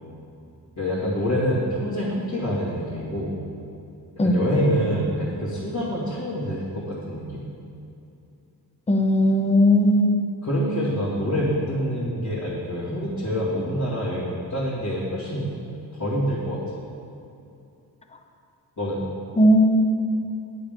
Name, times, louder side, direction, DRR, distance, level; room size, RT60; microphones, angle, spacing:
voice 1, 0.8-3.4 4.2-7.4 10.4-15.5 15.9-16.6 18.8-19.0, equal, 50° left, -11 dB, 2.3 m, -26 dB
voice 2, 8.9-10.2 19.4-19.8, equal, 15° left, 5 dB, 0.7 m, -17 dB
9.3 x 7.7 x 5.2 m, 2.7 s
wide cardioid pair, 145°, 38 cm